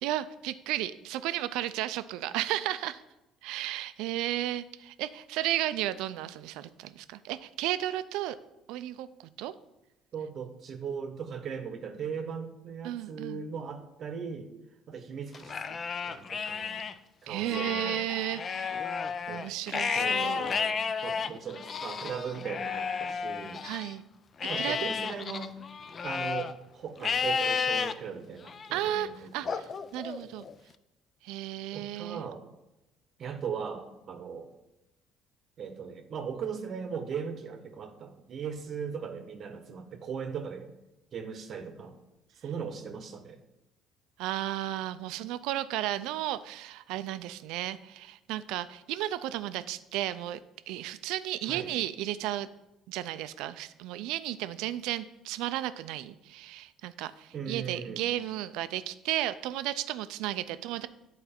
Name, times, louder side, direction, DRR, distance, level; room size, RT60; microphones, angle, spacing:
voice 1, 0.0-3.0 3.4-8.4 8.7-9.1 9.4-9.5 12.8-13.4 17.3-18.8 19.3-20.4 23.6-24.0 24.6-24.9 28.7-30.4 31.2-32.2 44.2-50.4 50.7-52.5 52.9-60.9, right 14 dB, 80° right, 14 dB, 0.4 m, -33 dB
voice 2, 10.1-14.5 14.9-15.8 16.0-16.8 17.2-18.0 19.3-19.4 19.9-23.6 24.4-25.5 26.0-29.6 31.7-32.4 33.2-34.5 35.6-40.7 41.1-42.0 42.4-43.4 51.5-51.7 57.3-58.1, right 6 dB, 45° right, 8 dB, 0.8 m, -38 dB
Livestock farm animals working animals, 15.3-16.9 17.4-23.9 24.4-26.5 27.0-27.9 28.5-28.9 29.5-30.5, left 6 dB, 35° left, 0.3 m, -32 dB
8.9 x 4.1 x 4.3 m, 0.95 s
cardioid pair, 115°, 0 cm